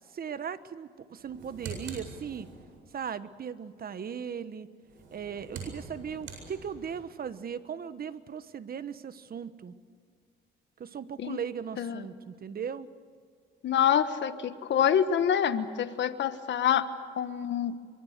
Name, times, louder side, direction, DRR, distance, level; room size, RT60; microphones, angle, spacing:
voice 1, 0.1-2.5 2.9-4.7 5.1-9.7 10.8-12.9, right 7 dB, 50° right, 13 dB, 1.3 m, -38 dB
sound 1, 1.2-2.8 4.8-7.1, right 5 dB, 80° right, 7.8 m, -44 dB
voice 2, 13.6-16.9 17.2-17.8, left 9 dB, 65° left, 10 dB, 1.4 m, -26 dB
24.0 x 24.0 x 6.7 m, 2.1 s
cardioid pair, 90°, 20 cm